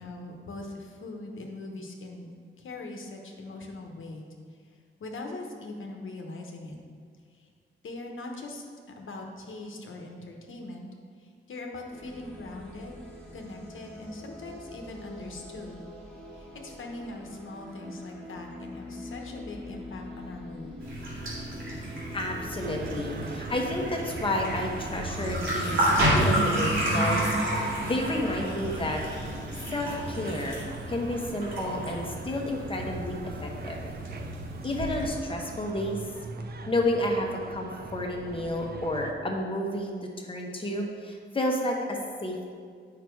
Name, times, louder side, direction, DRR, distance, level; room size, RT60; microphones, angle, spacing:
voice 1, 0.0-4.2 5.0-6.8 7.3-7.5 7.8-8.6 9.0-10.9 11.2-13.0 13.3-15.9 16.3-20.8, left 2 dB, 80° left, 1 dB, 1.2 m, -41 dB
sound 1, 11.9-30.7, left 1 dB, 5° left, 1.4 m, -44 dB
sound 2, 20.8-35.1, right 1 dB, 75° right, 2.4 m, -31 dB
voice 2, 22.1-27.3 27.5-29.0 29.3-29.4 29.7-33.8 34.6-36.0 36.7-42.5, left 1 dB, 25° left, 0 dB, 1.1 m, -31 dB
sound 3, 22.6-39.1, right 4 dB, 50° right, 0.6 m, -39 dB
9.1 x 5.9 x 4.6 m, 2.1 s
wide cardioid pair, 160°, 20 cm